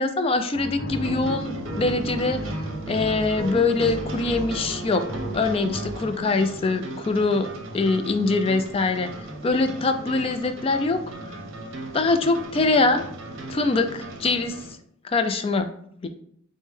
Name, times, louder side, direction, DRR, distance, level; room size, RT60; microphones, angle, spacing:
voice 1, 0.0-2.5 2.9-5.0 5.3-7.5 7.7-9.1 9.4-11.0 11.9-13.0 13.5-14.5 15.0-15.7 16.0-16.1, left 3 dB, 25° left, 8 dB, 0.3 m, -23 dB
sound 1, 0.5-6.0, equal, 50° left, 1.0 m, -33 dB
sound 2, 0.9-14.7, right 2 dB, 65° right, 0.7 m, -38 dB
5.2 x 2.1 x 3.2 m, 0.67 s
head